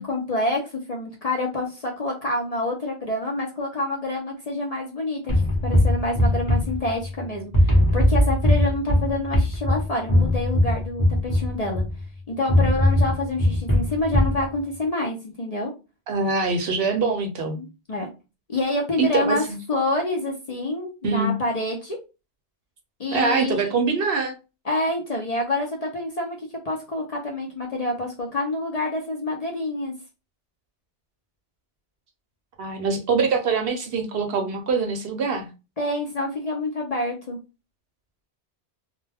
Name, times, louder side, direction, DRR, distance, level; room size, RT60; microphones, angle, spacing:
voice 1, 0.0-5.3 5.6-11.8 12.3-15.7 17.5-18.1 18.5-19.4 19.7-22.0 23.0-23.8 24.7-26.4 26.6-29.9 35.8-37.4, left 2 dB, 45° left, 0.5 m, -27 dB
sound 1, 5.3-7.2 7.5-12.0 12.5-14.4, left 1 dB, 20° left, 0.8 m, -20 dB
voice 2, 16.1-17.6 19.0-19.6 21.0-21.3 23.1-24.4 32.6-35.5, right 4 dB, 65° right, 0.7 m, -24 dB
2.2 x 2.2 x 3.3 m
omnidirectional pair, 1.1 m